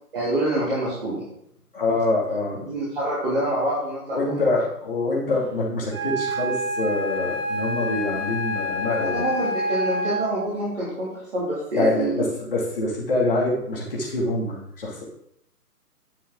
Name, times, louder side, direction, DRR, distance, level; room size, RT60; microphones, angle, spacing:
voice 1, 0.1-1.2 2.6-4.4 9.0-12.2, right 1 dB, 35° right, -9 dB, 2.9 m, -26 dB
voice 2, 1.7-2.7 4.1-9.3 11.7-15.0, left 2 dB, 35° left, -4 dB, 2.6 m, -25 dB
Wind instrument woodwind instrument, 5.9-10.5, equal, 15° left, 2.4 m, -28 dB
9.8 x 7.1 x 3.9 m, 0.74 s
figure-of-eight pair, 150°, 47 cm